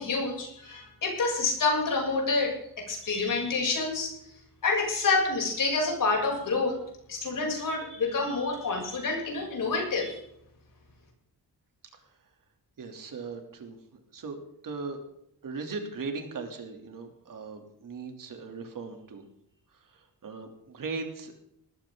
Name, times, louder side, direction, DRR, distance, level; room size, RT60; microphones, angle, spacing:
voice 1, 0.0-4.1 4.6-6.8 7.1-10.2, left 3 dB, 55° left, 0 dB, 7.3 m, -28 dB
voice 2, 12.8-13.8 14.1-14.4 14.6-15.0 15.4-19.2 19.9-21.3, right 4 dB, 60° right, 4 dB, 3.1 m, -38 dB
19.0 x 14.5 x 3.9 m, 0.74 s
wide cardioid pair, 150°, 38 cm